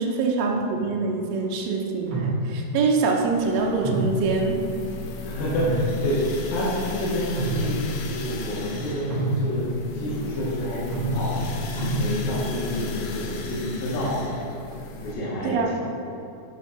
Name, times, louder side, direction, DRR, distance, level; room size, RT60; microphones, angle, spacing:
voice 1, 0.0-4.7 15.4-15.7, right 4 dB, 90° right, 0 dB, 1.5 m, -24 dB
sound 1, 0.7-1.2 2.1-2.8 3.8-5.0 5.4-6.5 7.2-8.0 9.1-9.8 10.9-12.5, right 1 dB, 65° right, 1.0 m, -29 dB
sound 2, 3.2-15.1, left 4 dB, 90° left, 2.4 m, -36 dB
voice 2, 5.2-9.7 9.9-11.5 11.9-14.2 15.0-15.7, equal, 75° left, -7 dB, 2.9 m, -28 dB
8.5 x 5.9 x 4.3 m, 2.7 s
omnidirectional pair, 4.1 m